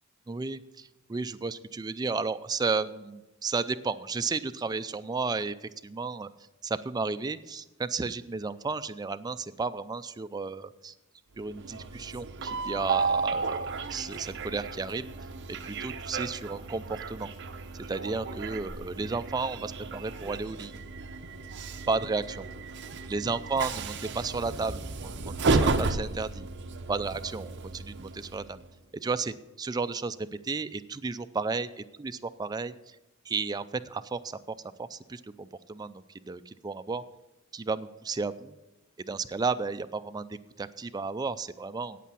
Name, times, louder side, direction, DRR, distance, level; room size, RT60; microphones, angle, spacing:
voice 1, 0.3-6.3 6.6-10.9 11.4-15.0 15.6-17.3 17.9-20.7 21.9-22.5 23.1-26.5 26.9-28.6 29.0-33.0 33.3-34.4 34.8-37.0 37.5-38.6 39.0-42.0, right 4 dB, 20° right, 11 dB, 0.3 m, -33 dB
Train, 11.4-28.7, right 4 dB, 55° right, 0.8 m, -33 dB
8.4 x 8.3 x 7.0 m, 1.0 s
head